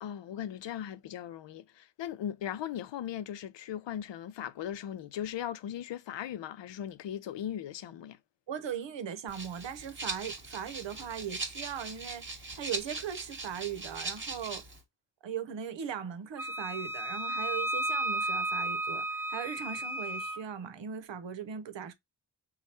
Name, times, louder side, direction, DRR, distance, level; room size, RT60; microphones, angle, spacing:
voice 1, 0.0-8.2, left 10 dB, 75° left, 0.5 m, -38 dB
voice 2, 8.5-14.6 15.2-21.9, right 8 dB, 80° right, 0.8 m, -39 dB
Rattle (instrument), 9.3-14.8, right 3 dB, 25° right, 1.1 m, -40 dB
Wind instrument woodwind instrument, 16.4-20.4, right 1 dB, 5° right, 0.5 m, -33 dB
3.3 x 2.3 x 4.2 m
wide cardioid pair, 90°, 44 cm